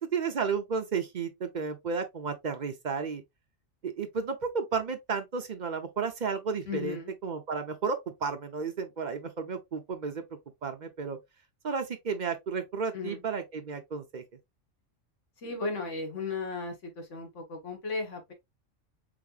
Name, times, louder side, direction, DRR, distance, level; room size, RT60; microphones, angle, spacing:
voice 1, 0.0-3.2 3.8-7.0 7.2-10.2 10.6-11.2 11.6-14.2, right 5 dB, 50° right, 0.6 m, -32 dB
voice 2, 6.7-7.1 12.9-13.2 15.4-18.3, left 3 dB, 75° left, 1.7 m, -35 dB
4.9 x 3.4 x 2.4 m
omnidirectional pair, 1.3 m